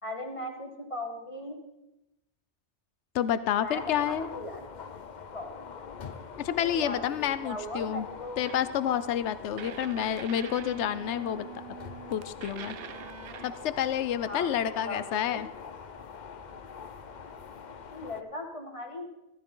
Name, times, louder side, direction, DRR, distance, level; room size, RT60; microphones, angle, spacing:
voice 1, 0.0-1.6 3.6-4.7 5.3-5.5 6.6-8.4 14.2-14.5 14.9-15.4 17.9-19.1, left 1 dB, 30° left, 2 dB, 1.8 m, -38 dB
voice 2, 3.1-4.3 6.4-8.1 8.4-11.5 12.1-12.8 13.4-15.5, left 10 dB, 80° left, 13 dB, 1.0 m, -29 dB
sound 1, 3.7-18.2, left 6 dB, 45° left, 0.8 m, -44 dB
sound 2, 8.5-8.9 9.6-13.8, right 10 dB, 65° right, 0.8 m, -44 dB
15.5 x 14.5 x 3.8 m, 0.94 s
omnidirectional pair, 1.2 m